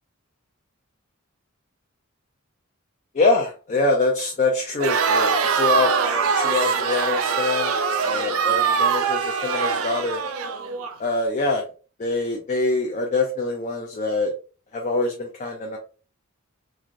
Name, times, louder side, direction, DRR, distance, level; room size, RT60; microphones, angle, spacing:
voice 1, 3.1-5.9 6.3-7.7 8.0-10.2 11.0-11.6 12.0-14.3 14.7-15.8, left 3 dB, 35° left, 1 dB, 0.4 m, -24 dB
Crowd, 4.8-10.9, right 6 dB, 85° right, 0.4 m, -23 dB
3.2 x 2.4 x 2.5 m, 0.36 s
head